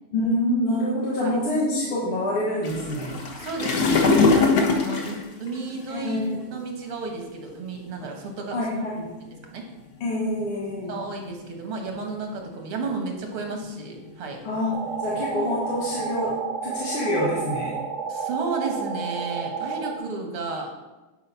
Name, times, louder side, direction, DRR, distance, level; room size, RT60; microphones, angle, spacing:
voice 1, 0.1-3.2 5.9-6.4 8.5-9.1 10.0-11.0 14.4-17.8, left 1 dB, 90° left, -5 dB, 2.4 m, -26 dB
sound 1, 2.6-6.1 6.9-7.1 7.8-7.9 8.2-8.4 9.0-9.5 10.4-11.5 11.9-12.4 12.8-13.2 13.6-16.3, left 4 dB, 50° left, 1.6 m, -23 dB
voice 2, 3.3-8.6 9.5-9.6 10.9-14.4 18.1-20.7, right 3 dB, 85° right, 2 dB, 2.4 m, -33 dB
sound 2, 14.7-20.0, right 6 dB, 60° right, 0.8 m, -31 dB
11.0 x 5.0 x 5.6 m, 1.1 s
omnidirectional pair, 2.3 m